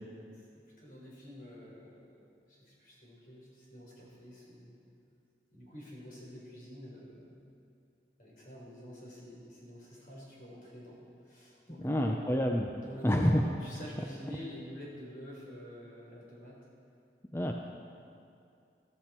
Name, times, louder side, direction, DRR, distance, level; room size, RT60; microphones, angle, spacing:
voice 1, 0.3-4.7 5.5-7.5 8.2-12.4 12.7-16.5, left 1 dB, 50° left, -4 dB, 4.2 m, -48 dB
voice 2, 11.8-12.7 13.0-13.4 17.3-17.5, equal, 15° left, 2 dB, 0.5 m, -27 dB
15.0 x 14.5 x 4.4 m, 2.5 s
head